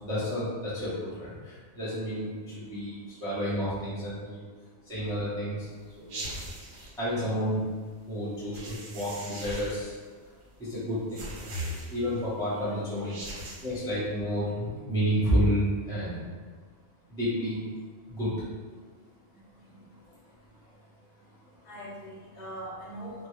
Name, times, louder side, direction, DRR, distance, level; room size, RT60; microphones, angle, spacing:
voice 1, 0.0-4.4 4.9-5.7 6.0-6.2 7.0-7.7 8.1-9.9 10.6-11.3 11.9-13.1 13.6-16.3 17.1-17.7 18.1-18.3, equal, 5° left, -10 dB, 0.7 m, -30 dB
sound 1, 6.1-6.9 8.5-9.9 11.1-12.2 13.0-13.8, right 1 dB, 85° right, 1.0 m, -39 dB
voice 2, 12.5-12.9 19.0-19.1 19.3-19.4 19.7-19.8 21.6-23.3, right 1 dB, 50° left, -5 dB, 0.6 m, -42 dB
2.3 x 2.0 x 3.0 m, 1.5 s
omnidirectional pair, 1.2 m